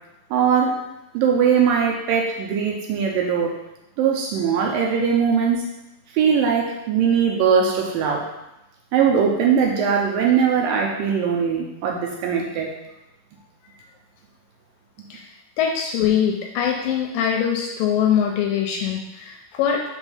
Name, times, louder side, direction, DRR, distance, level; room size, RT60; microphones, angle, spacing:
voice 1, 0.3-0.8 1.1-3.6 4.0-5.7 6.1-8.3 8.9-12.7, right 7 dB, 80° right, 0 dB, 2.2 m, -20 dB
voice 2, 15.6-19.8, left 8 dB, 80° left, 1 dB, 2.1 m, -22 dB
6.1 x 3.9 x 5.6 m, 0.91 s
omnidirectional pair, 4.4 m